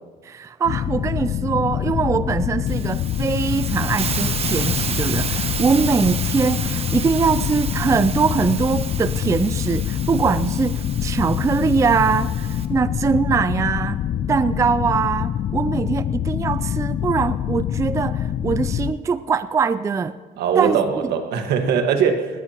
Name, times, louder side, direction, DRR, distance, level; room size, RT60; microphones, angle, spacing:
voice 1, 0.3-14.0 14.3-20.2 20.6-20.8, right 5 dB, 20° right, 15 dB, 0.3 m, -22 dB
sound 1, 0.6-18.9, left 10 dB, 45° left, 0.4 m, -25 dB
Hiss, 2.7-12.7, right 6 dB, 35° right, 1.1 m, -31 dB
voice 2, 20.4-22.4, right 7 dB, 75° right, 6 dB, 1.7 m, -21 dB
20.0 x 18.5 x 3.0 m, 1.5 s
cardioid pair, 110°, 17 cm